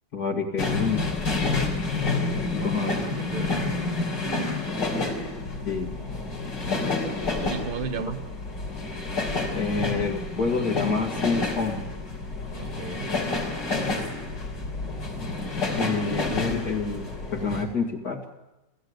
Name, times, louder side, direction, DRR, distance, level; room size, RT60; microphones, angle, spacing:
voice 1, 0.1-1.0 2.5-3.1 5.6-5.9 6.7-7.2 9.5-11.8 15.8-18.2, left 4 dB, 60° left, -1 dB, 2.9 m, -28 dB
sound 1, 0.6-17.6, left 3 dB, 85° left, 4.4 m, -29 dB
voice 2, 2.5-4.2 7.5-8.3 12.6-13.2, right 5 dB, 35° right, 10 dB, 1.3 m, -35 dB
28.0 x 15.5 x 8.1 m, 1.0 s
omnidirectional pair, 1.9 m